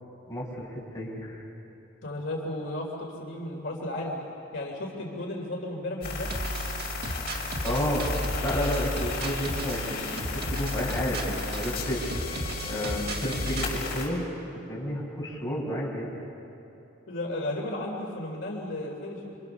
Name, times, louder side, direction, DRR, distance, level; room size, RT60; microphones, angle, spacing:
voice 1, 0.3-1.4 7.6-8.1 8.4-12.0 12.6-14.3 14.5-16.2, equal, 20° left, -4 dB, 5.6 m, -31 dB
voice 2, 2.0-4.2 4.5-6.3 17.1-19.4, left 1 dB, 65° left, -1 dB, 3.3 m, -34 dB
sound 1, 6.0-14.1, left 3 dB, 50° left, 6.1 m, -34 dB
sound 2, 6.3-13.8, equal, 50° right, 1.8 m, -34 dB
27.0 x 25.5 x 7.0 m, 2.8 s
head